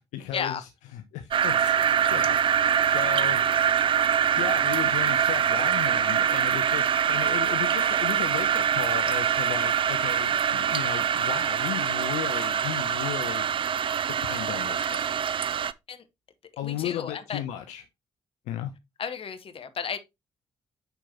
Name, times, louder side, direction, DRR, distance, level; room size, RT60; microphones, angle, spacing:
voice 1, 0.0-1.7 2.1-2.4 2.9-3.4 4.2-13.5 14.1-15.2 16.6-17.8 18.5-18.7, left 11 dB, 70° left, 0.6 m, -35 dB
sound 1, 1.3-15.7, right 8 dB, 45° right, 0.4 m, -24 dB
voice 2, 16.6-17.4 19.0-20.0, left 7 dB, 45° left, 1.0 m, -33 dB
9.0 x 4.5 x 2.8 m
figure-of-eight pair, 40°, 13 cm